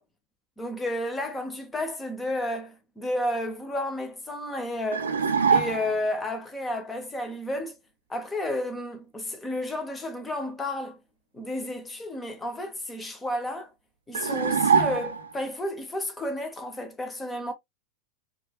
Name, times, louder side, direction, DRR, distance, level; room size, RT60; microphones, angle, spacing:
voice 1, 0.6-5.1 5.5-7.7 8.1-11.0 11.3-13.7 14.1-17.5, left 1 dB, 10° left, 0.9 m, -32 dB
sound 1, 4.9-6.1 14.1-15.4, right 6 dB, 70° right, 0.6 m, -24 dB
4.3 x 2.5 x 2.3 m
figure-of-eight pair, 90°, 0 cm